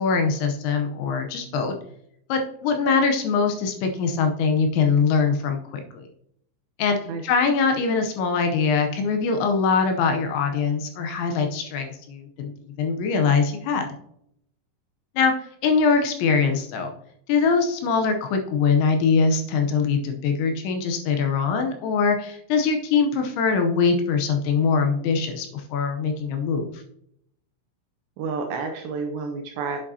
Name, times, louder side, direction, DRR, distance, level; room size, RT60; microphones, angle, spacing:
voice 1, 0.0-1.8 2.3-6.0 6.8-7.0 7.2-12.5 12.8-13.9 15.2-15.3 15.6-16.9 17.3-26.8, left 5 dB, 80° left, 4 dB, 2.9 m, -22 dB
voice 2, 28.2-29.8, right 4 dB, 80° right, 3 dB, 2.6 m, -30 dB
8.4 x 7.5 x 2.7 m, 0.72 s
omnidirectional pair, 5.7 m